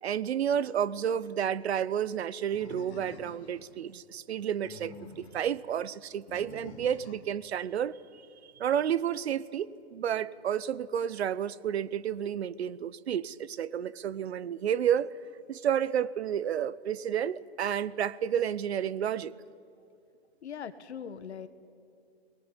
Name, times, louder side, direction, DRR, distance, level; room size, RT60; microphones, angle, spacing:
voice 1, 0.0-8.0 8.6-15.1 15.5-19.3, right 9 dB, 75° right, 20 dB, 0.8 m, -31 dB
Animal, 2.5-3.7 4.4-5.5 6.3-7.3, left 3 dB, 30° left, 2.6 m, -48 dB
voice 2, 20.4-21.5, left 7 dB, 80° left, 12 dB, 1.5 m, -40 dB
19.5 x 18.5 x 9.9 m, 2.5 s
hypercardioid pair, 175°, 33 cm